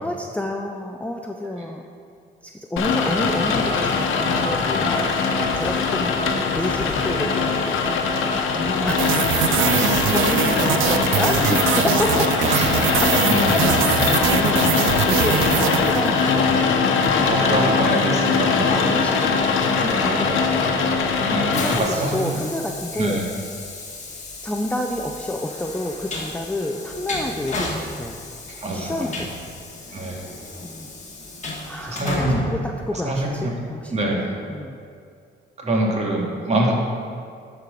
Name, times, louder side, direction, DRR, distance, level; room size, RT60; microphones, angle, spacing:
voice 1, 0.0-1.9 2.4-5.1 5.6-9.1 9.7-12.7 13.0-14.7 15.0-17.1 18.7-20.7 21.4-23.2 24.4-28.2 28.7-29.3 30.6-30.9 31.6-34.1 34.5-34.8, left 1 dB, 5° left, 2 dB, 0.5 m, -29 dB
Rain, 2.8-21.8, left 4 dB, 80° left, 0.9 m, -21 dB
sound 1, 8.9-16.4, right 10 dB, 80° right, 0.5 m, -23 dB
voice 2, 17.1-18.7 20.0-20.3 21.3-22.4 23.0-23.2 28.6-29.1 29.9-30.3 31.9-32.4 33.0-33.5 33.9-34.2 35.6-36.7, right 1 dB, 35° right, -2 dB, 2.1 m, -24 dB
Train, 21.3-33.5, left 2 dB, 35° left, 1.8 m, -34 dB
12.5 x 4.8 x 5.1 m, 2.3 s
cardioid pair, 90°, 20 cm